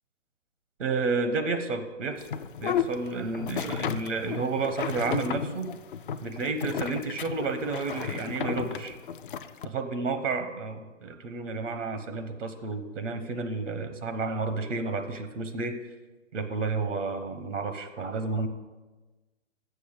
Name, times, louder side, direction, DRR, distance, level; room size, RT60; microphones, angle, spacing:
voice 1, 0.8-2.3 2.6-5.7 6.2-9.0 9.6-15.8 16.3-18.5, right 4 dB, 70° right, 9 dB, 1.0 m, -31 dB
sound 1, 2.2-9.7, left 8 dB, 45° left, 0.4 m, -33 dB
7.0 x 6.7 x 6.4 m, 1.2 s
hypercardioid pair, 140°, 38 cm